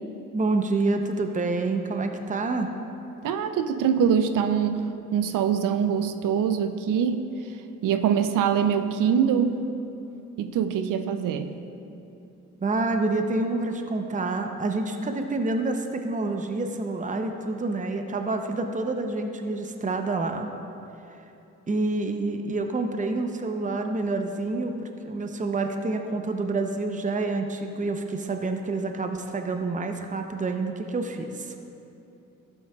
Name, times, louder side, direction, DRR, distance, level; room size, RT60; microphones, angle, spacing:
voice 1, 0.3-2.7 12.6-20.5 21.7-31.5, right 3 dB, 25° right, 5 dB, 0.7 m, -28 dB
voice 2, 3.2-4.8 5.1-7.2 7.8-9.6 10.4-11.5, right 7 dB, 80° right, 9 dB, 0.6 m, -23 dB
12.0 x 8.1 x 2.3 m, 2.9 s
supercardioid pair, 50°, 32 cm